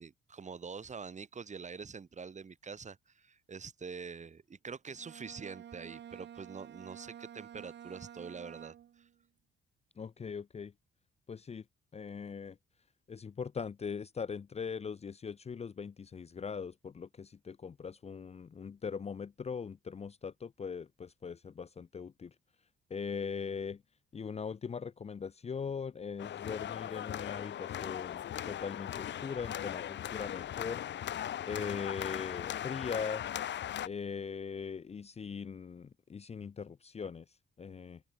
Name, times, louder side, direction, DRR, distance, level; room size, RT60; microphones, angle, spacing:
voice 1, 0.0-9.1, right 5 dB, 35° right, 4.1 m, -45 dB
Bowed string instrument, 4.9-9.2, right 10 dB, 60° right, 1.9 m, -50 dB
voice 2, 10.0-10.7 11.3-11.6 11.9-12.6 13.1-22.3 22.9-23.8 24.1-30.8 31.5-33.2 33.8-38.0, left 6 dB, 30° left, 0.8 m, -40 dB
sound 1, 26.2-33.9, left 11 dB, 65° left, 1.5 m, -39 dB
open air
cardioid pair, 90°, 20 cm